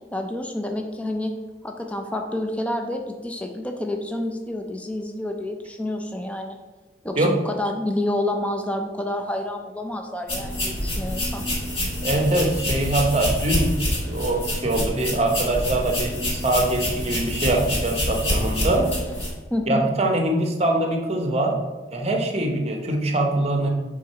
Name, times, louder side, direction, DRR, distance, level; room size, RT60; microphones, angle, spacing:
voice 1, 0.1-1.3 1.6-6.6 7.0-11.4 19.5-19.8, left 1 dB, 5° left, 4 dB, 0.5 m, -28 dB
sound 1, 10.3-19.3, left 1 dB, 30° left, 1.6 m, -27 dB
voice 2, 12.0-13.8 14.0-18.9 19.7-21.6 21.9-23.7, right 1 dB, 35° right, 2 dB, 0.8 m, -23 dB
4.8 x 3.8 x 5.4 m, 1.2 s
head